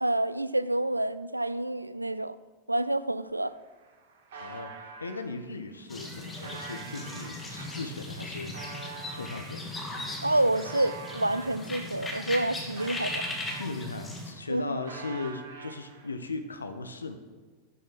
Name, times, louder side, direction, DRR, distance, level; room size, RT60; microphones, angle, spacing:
voice 1, 0.0-2.4 2.7-3.6 10.2-13.2 14.5-14.8, right 1 dB, 85° right, 0.5 m, -28 dB
sound 1, 3.6-5.2 5.8-11.6 12.1-14.0 14.3-16.1, right 4 dB, 55° right, 3.7 m, -46 dB
voice 2, 4.4-10.2 13.6-17.2, left 3 dB, 75° left, 1.2 m, -38 dB
sound 2, 5.9-14.3, left 1 dB, 15° left, 2.3 m, -38 dB
11.5 x 9.8 x 6.0 m
figure-of-eight pair, 90°, 0 cm